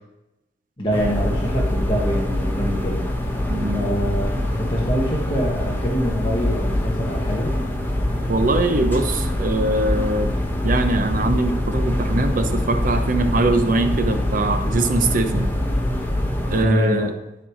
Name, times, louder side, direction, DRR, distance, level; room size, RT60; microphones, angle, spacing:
voice 1, 0.8-3.0 3.7-7.5 16.6-17.1, equal, 30° left, -4 dB, 1.4 m, -25 dB
sound 1, 0.9-16.6, left 1 dB, 10° left, 1.1 m, -24 dB
voice 2, 3.5-3.9 8.3-10.3 10.6-15.5 16.5-17.1, right 2 dB, 50° right, 8 dB, 0.8 m, -22 dB
12.0 x 4.7 x 5.0 m, 0.92 s
head